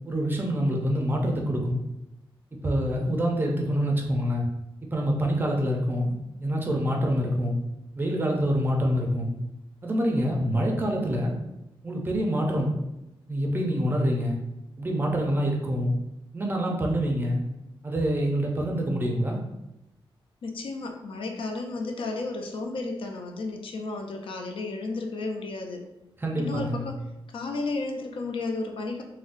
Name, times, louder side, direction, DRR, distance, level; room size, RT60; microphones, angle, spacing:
voice 1, 0.0-1.8 2.6-4.5 4.9-6.1 6.4-7.5 8.0-9.3 9.8-11.3 11.8-12.8 13.3-14.4 14.8-15.9 16.3-17.4 17.8-19.4 26.2-26.9, equal, 20° right, 0 dB, 0.4 m, -26 dB
voice 2, 20.4-25.8 26.4-27.0 27.3-29.0, left 3 dB, 65° left, 3 dB, 0.4 m, -33 dB
3.7 x 2.1 x 2.5 m, 0.89 s
wide cardioid pair, 160°, 9 cm